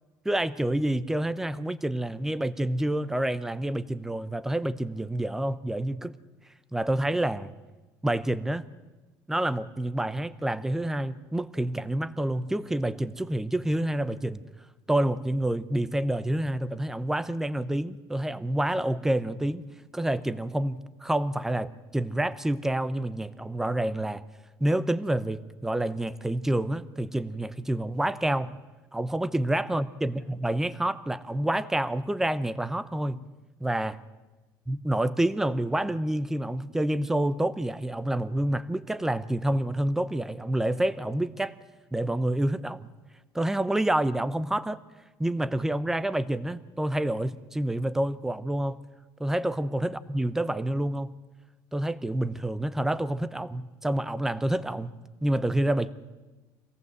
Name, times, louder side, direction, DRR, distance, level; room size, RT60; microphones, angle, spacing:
voice 1, 0.2-6.1 6.7-7.5 8.0-8.7 9.3-14.4 14.9-19.7 19.9-24.2 24.6-28.6 28.9-33.3 33.6-34.0 34.7-41.6 41.9-42.9 43.3-44.8 45.2-48.8 49.2-51.1 51.7-54.9 55.2-55.9, right 1 dB, 5° right, 15 dB, 0.7 m, -28 dB
25.0 x 18.0 x 7.9 m, 1.2 s
cardioid pair, 155°, 8 cm